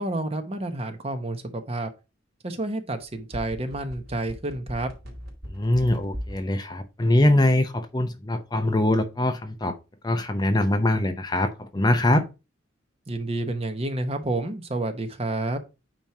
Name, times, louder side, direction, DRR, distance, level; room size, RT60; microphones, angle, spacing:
voice 1, 0.0-1.9 2.4-4.9 13.1-15.6, right 2 dB, 30° right, 0.9 m, -29 dB
sound 1, 3.0-6.4 6.7-6.8, equal, 55° right, 2.8 m, -37 dB
voice 2, 5.5-9.8 10.0-12.2, left 1 dB, 20° left, 0.6 m, -23 dB
8.9 x 3.0 x 4.7 m
head